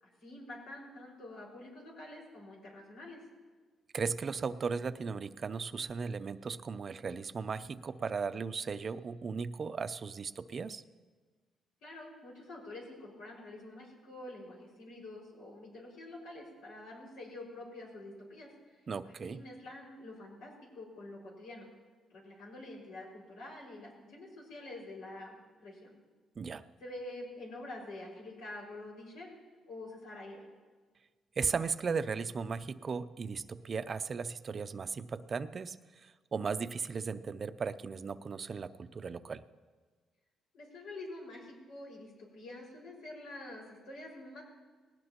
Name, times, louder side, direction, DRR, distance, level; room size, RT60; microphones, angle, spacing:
voice 1, 0.0-3.2 11.8-18.8 19.0-21.7 22.1-25.9 26.8-29.3 29.7-30.4 40.5-44.4, left 2 dB, 90° left, -3 dB, 5.6 m, -47 dB
voice 2, 3.9-10.8 18.9-19.4 26.4-26.6 31.4-39.4, right 5 dB, 45° right, 13 dB, 0.5 m, -36 dB
19.5 x 17.5 x 3.0 m, 1.4 s
cardioid pair, 90°, 0 cm